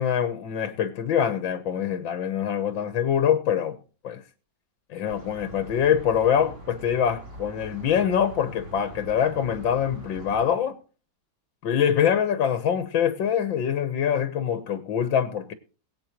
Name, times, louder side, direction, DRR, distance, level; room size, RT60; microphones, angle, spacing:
voice 1, 0.0-3.8 4.0-4.2 4.9-10.8 11.6-15.5, left 8 dB, 80° left, 1.9 m, -24 dB
sound 1, 5.1-10.4, right 1 dB, 40° right, 3.3 m, -43 dB
22.0 x 8.6 x 3.0 m
omnidirectional pair, 2.1 m